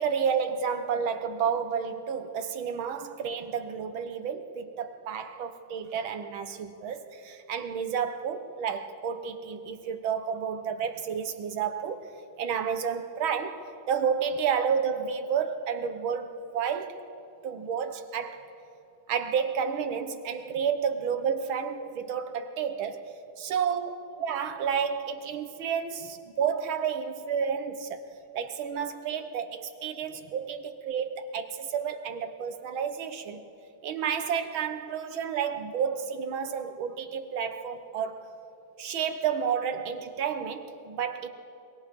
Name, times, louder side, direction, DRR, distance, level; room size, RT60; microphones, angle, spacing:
voice 1, 0.0-12.1 12.4-17.0 17.4-18.4 19.1-23.0 23.4-23.9 24.2-28.0 28.3-33.4 33.8-38.3 38.8-41.3, right 7 dB, 75° right, 8 dB, 1.9 m, -31 dB
23.0 x 22.5 x 5.3 m, 2.7 s
omnidirectional pair, 2.3 m